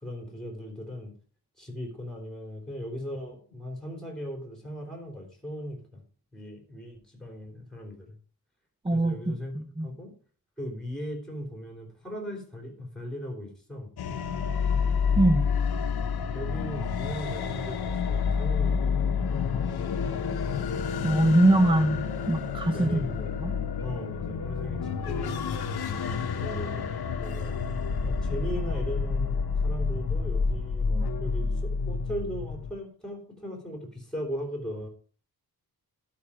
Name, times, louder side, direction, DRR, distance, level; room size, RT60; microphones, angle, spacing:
voice 1, 0.0-1.1 1.6-6.0 6.3-8.2 8.9-10.1 10.6-13.9 16.3-19.3 22.7-23.3 23.8-25.4 26.1-26.8 27.1-27.7 28.0-34.9, equal, ahead, 2 dB, 3.4 m, -38 dB
voice 2, 8.8-9.9 15.2-15.4 21.0-22.0 22.3-23.0 23.4-23.5, right 1 dB, 15° right, 7 dB, 0.8 m, -22 dB
sound 1, 14.0-32.7, left 5 dB, 75° left, 1.0 m, -29 dB
12.0 x 5.7 x 4.9 m, 0.42 s
wide cardioid pair, 120°, 37 cm